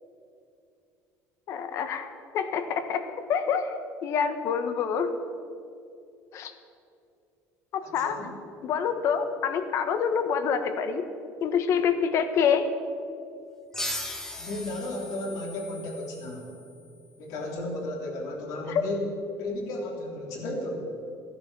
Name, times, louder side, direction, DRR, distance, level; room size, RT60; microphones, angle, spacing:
voice 1, 1.5-2.1 2.3-5.1 6.3-6.5 7.7-8.3 8.6-11.1 11.4-12.7 18.7-18.8, left 7 dB, 50° left, 9 dB, 1.3 m, -27 dB
voice 2, 7.8-8.3 14.3-16.5 17.2-19.0 19.4-20.8, left 1 dB, 70° left, 0 dB, 3.6 m, -34 dB
sound 1, 13.7-17.0, left 1 dB, 10° left, 1.3 m, -38 dB
15.5 x 11.0 x 7.5 m, 2.5 s
cardioid pair, 150°, 6 cm